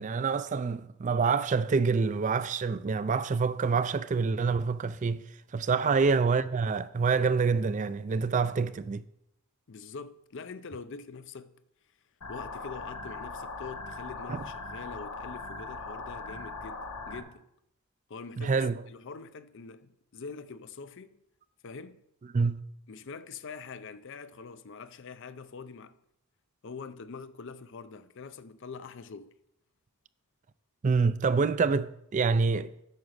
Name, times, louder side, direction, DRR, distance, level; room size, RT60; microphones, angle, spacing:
voice 1, 0.0-5.2 5.5-9.0 14.3-14.4 18.4-18.8 22.3-22.6 30.8-32.7, right 5 dB, 35° right, 0.3 m, -26 dB
voice 2, 9.7-11.5 12.3-17.4 18.1-21.2 21.6-22.0 22.9-26.0 26.6-29.3, left 5 dB, 55° left, 0.5 m, -44 dB
sound 1, 12.2-17.2, left 3 dB, 85° left, 1.4 m, -40 dB
8.9 x 6.1 x 6.4 m
head